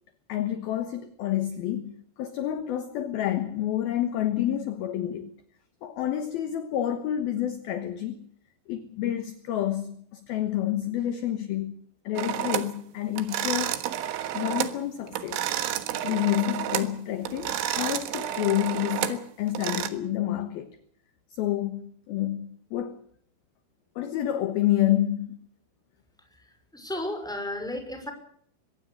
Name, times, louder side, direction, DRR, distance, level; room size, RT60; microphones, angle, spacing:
voice 1, 0.3-1.9 2.2-5.3 5.8-8.2 8.7-11.7 12.0-13.8 14.3-15.4 16.0-20.8 21.3-23.0 24.0-25.4, left 12 dB, 65° left, 2.5 m, -29 dB
sound 1, 12.2-12.8 13.2-14.8 15.1-17.0 17.3-19.9, right 12 dB, 75° right, 3.7 m, -30 dB
voice 2, 26.7-28.1, left 1 dB, ahead, 5.4 m, -33 dB
23.5 x 19.0 x 6.6 m
omnidirectional pair, 5.8 m